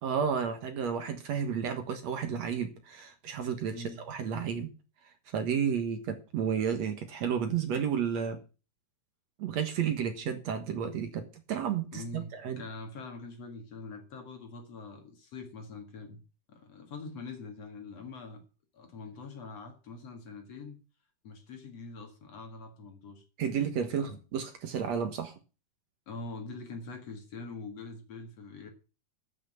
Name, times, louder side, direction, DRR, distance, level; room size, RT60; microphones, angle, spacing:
voice 1, 0.0-3.8 4.1-4.7 5.3-8.4 9.4-12.6 23.4-25.3, right 7 dB, 60° right, 7 dB, 2.0 m, -32 dB
voice 2, 11.9-16.2 16.5-18.4 18.7-20.8 21.2-23.2 23.9-24.2 26.1-28.7, left 3 dB, 50° left, 5 dB, 2.5 m, -44 dB
12.5 x 6.2 x 7.4 m, 0.34 s
omnidirectional pair, 4.6 m